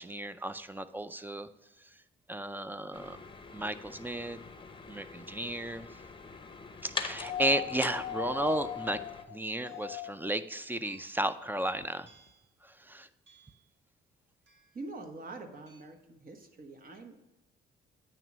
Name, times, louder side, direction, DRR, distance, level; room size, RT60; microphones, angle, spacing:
voice 1, 0.0-1.5 1.8-2.0 2.3-3.2 3.5-4.4 4.9-5.9 6.8-9.0 9.3-12.1 12.6-13.1, right 1 dB, 10° right, 13 dB, 0.4 m, -34 dB
sound 1, 2.9-9.2, left 5 dB, 25° left, 0.7 m, -44 dB
sound 2, 7.1-10.4 11.8-11.9, left 9 dB, 55° left, 0.4 m, -38 dB
sound 3, 8.5-8.9 9.7-10.1 10.9-11.3 12.1-12.5 13.3-13.7 14.5-14.9 15.7-15.8, right 4 dB, 65° right, 1.9 m, -63 dB
voice 2, 14.7-17.2, right 2 dB, 45° right, 5 dB, 1.2 m, -45 dB
9.0 x 3.0 x 6.0 m, 1.0 s
cardioid pair, 90°, 20 cm